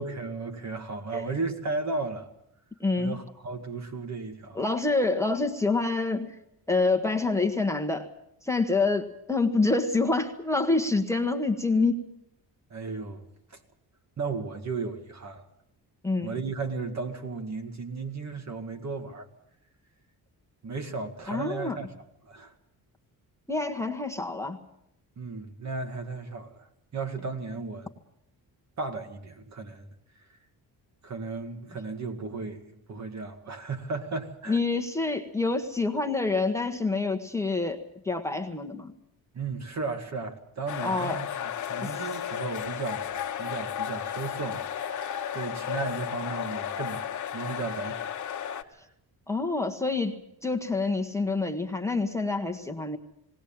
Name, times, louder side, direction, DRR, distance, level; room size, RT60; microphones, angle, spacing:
voice 1, 0.0-2.3 3.0-4.6 12.7-13.2 13.5-13.6 14.2-15.4 16.2-19.3 20.6-21.9 22.3-22.5 25.2-26.7 26.9-27.9 28.8-29.9 31.0-34.6 39.3-43.1 43.4-45.0 45.3-47.0 47.3-48.1 48.5-48.8, right 4 dB, 45° right, 6 dB, 2.0 m, -35 dB
voice 2, 2.8-3.2 4.6-6.4 6.7-8.1 8.4-12.0 16.0-16.4 21.3-21.8 23.5-24.6 34.5-38.9 40.8-41.2 41.8-41.9 49.3-53.0, left 3 dB, 5° left, 2 dB, 1.1 m, -27 dB
sound 1, 40.7-48.6, left 9 dB, 50° left, 1.1 m, -33 dB
19.0 x 18.5 x 8.8 m, 0.79 s
cardioid pair, 140°, 38 cm